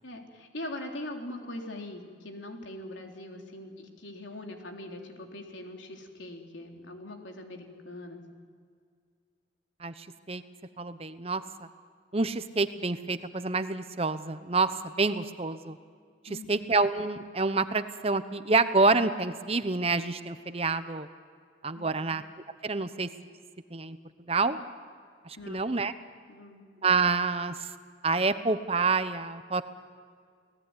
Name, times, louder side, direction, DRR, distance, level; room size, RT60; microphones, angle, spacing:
voice 1, 0.0-8.2 16.3-16.6 21.8-22.1 25.4-25.9 26.3-26.7, left 1 dB, 80° left, 2 dB, 3.6 m, -42 dB
voice 2, 9.8-10.4 10.8-11.4 12.1-15.8 16.3-21.1 21.6-22.2 22.6-23.1 23.7-24.0 24.3-24.6 25.2-25.9 26.8-27.7 28.0-29.6, right 3 dB, 30° right, 11 dB, 0.9 m, -27 dB
29.5 x 19.0 x 9.8 m, 2.1 s
head